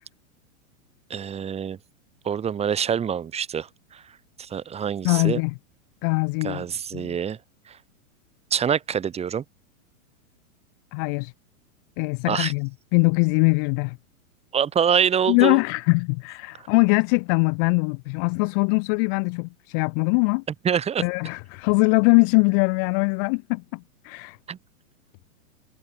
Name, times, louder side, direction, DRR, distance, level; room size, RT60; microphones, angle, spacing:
voice 1, 1.1-1.8 2.2-4.0 4.4-5.4 6.4-7.4 7.7-7.8 8.5-9.4 12.3-12.5 14.5-15.6 20.6-21.0 24.5-24.6, right 8 dB, 15° right, 1.6 m, -25 dB
voice 2, 5.0-5.5 6.0-6.6 6.9-7.2 10.9-11.3 12.0-14.0 15.3-20.4 21.0-24.4, left 39 dB, 15° left, 0.3 m, -22 dB
supercardioid pair, 145°, 42 cm